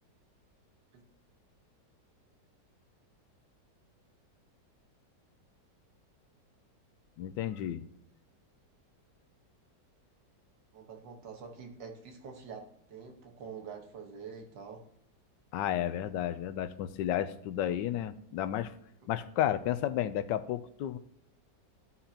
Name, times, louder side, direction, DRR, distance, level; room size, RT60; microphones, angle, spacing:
voice 1, 7.2-7.8 15.5-18.7 19.1-21.0, left 11 dB, 85° left, 12 dB, 1.3 m, -32 dB
voice 2, 10.7-12.6 12.9-14.9, right 6 dB, 80° right, 2 dB, 2.0 m, -46 dB
14.0 x 5.8 x 2.9 m, 0.75 s
omnidirectional pair, 1.9 m